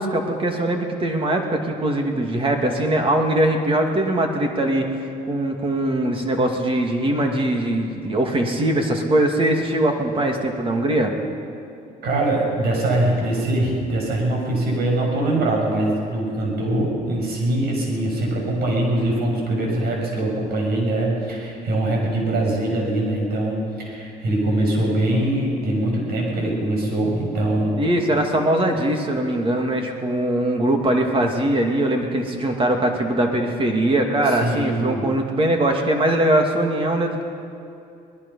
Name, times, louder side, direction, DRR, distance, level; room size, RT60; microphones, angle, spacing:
voice 1, 0.0-11.1 27.8-37.2, right 1 dB, 30° right, 3 dB, 2.5 m, -21 dB
voice 2, 12.0-27.8 34.2-35.0, right 1 dB, 70° right, 0 dB, 6.5 m, -22 dB
24.0 x 19.5 x 5.7 m, 2.5 s
cardioid pair, 110°, 17 cm